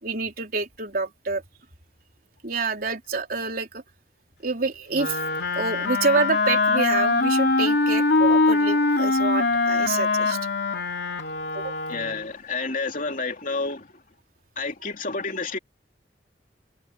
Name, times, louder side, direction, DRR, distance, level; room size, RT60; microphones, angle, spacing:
voice 1, 0.0-1.4 2.4-3.8 4.4-5.2 5.6-10.4 11.5-11.8, right 4 dB, 55° right, 3.8 m, -27 dB
Wind instrument woodwind instrument, 4.9-12.3, left 3 dB, 70° left, 2.9 m, -22 dB
voice 2, 11.9-13.9 14.6-15.6, left 3 dB, 50° left, 3.0 m, -29 dB
head